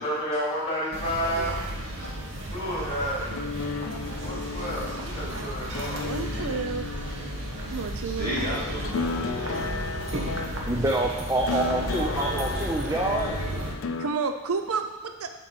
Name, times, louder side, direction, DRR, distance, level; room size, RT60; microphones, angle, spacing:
voice 1, 0.0-1.6 2.5-3.3 4.2-6.1 10.7-10.8 12.0-13.0 13.2-13.8, equal, 25° left, -6 dB, 2.6 m, -32 dB
sound 1, 0.9-13.7, right 1 dB, 60° right, 1.2 m, -34 dB
voice 2, 1.7-2.5 7.4-7.5 8.2-10.4, right 1 dB, 40° right, -4 dB, 1.9 m, -35 dB
Flamenco Tune-Up, 3.3-14.1, left 4 dB, 60° left, 0.4 m, -35 dB
voice 3, 5.9-6.9 7.4-8.3 14.0-15.3, right 5 dB, 75° right, 7 dB, 0.5 m, -31 dB
voice 4, 10.7-13.4, right 2 dB, 15° right, -1 dB, 0.5 m, -26 dB
7.3 x 4.5 x 6.2 m, 1.1 s
head